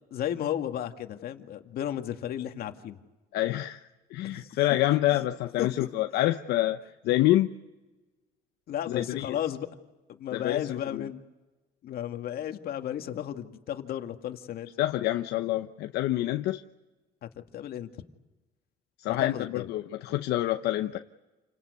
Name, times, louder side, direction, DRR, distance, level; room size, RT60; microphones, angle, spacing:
voice 1, 0.1-3.0 4.2-4.5 4.9-5.3 5.6-5.7 8.7-9.7 10.1-11.2 11.8-14.7 17.2-17.9 19.1-19.7, left 10 dB, 65° left, 6 dB, 2.1 m, -34 dB
voice 2, 3.3-7.5 8.9-9.4 10.3-11.0 14.8-16.6 19.0-21.0, left 15 dB, 80° left, 7 dB, 0.9 m, -27 dB
29.5 x 19.0 x 9.7 m, 1.1 s
cardioid pair, 110°, 17 cm